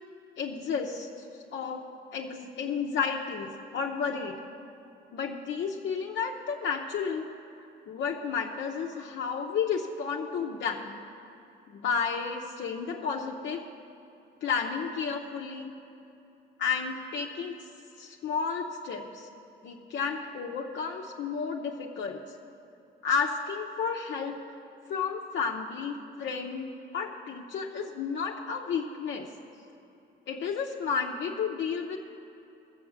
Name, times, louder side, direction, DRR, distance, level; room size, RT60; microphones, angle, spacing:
voice 1, 0.4-1.8 2.1-4.4 5.1-7.3 7.9-11.0 11.7-13.6 14.4-15.7 16.6-17.6 18.0-19.3 19.6-22.2 23.0-24.4 24.9-26.7 26.9-29.3 30.3-32.0, left 6 dB, 65° left, 0 dB, 0.8 m, -32 dB
13.5 x 7.2 x 7.2 m, 2.8 s
cardioid pair, 90°, 20 cm